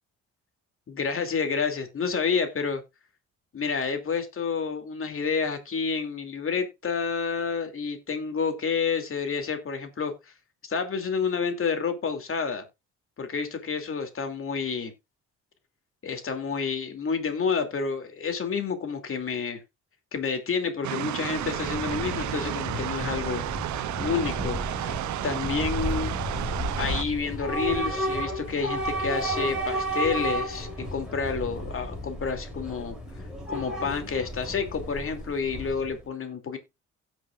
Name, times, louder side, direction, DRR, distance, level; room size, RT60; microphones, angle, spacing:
voice 1, 0.9-2.8 3.5-10.1 10.6-12.6 13.2-14.9 16.0-19.6 20.1-23.5 24.0-26.1 26.8-33.0 33.5-36.6, left 5 dB, 45° left, 2.6 m, -29 dB
sound 1, 20.8-27.0, right 14 dB, 70° right, 0.6 m, -32 dB
Train / Subway metro underground, 21.2-36.1, equal, ahead, 4.7 m, -33 dB
17.0 x 6.2 x 2.4 m
cardioid pair, 90°, 30 cm